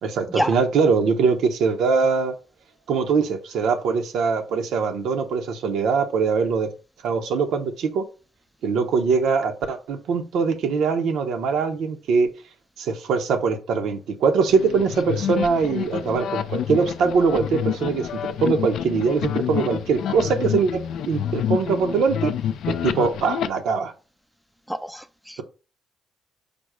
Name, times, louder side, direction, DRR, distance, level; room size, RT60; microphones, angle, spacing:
voice 1, 0.0-2.3 2.9-6.7 7.0-8.0 8.6-12.3 12.8-22.3 22.7-23.9, right 5 dB, 80° right, 0.7 m, -22 dB
sound 1, 14.5-23.5, left 9 dB, 75° left, 0.3 m, -28 dB
voice 2, 24.7-25.4, equal, ahead, 0.4 m, -27 dB
5.1 x 2.1 x 4.6 m
cardioid pair, 90°, 0 cm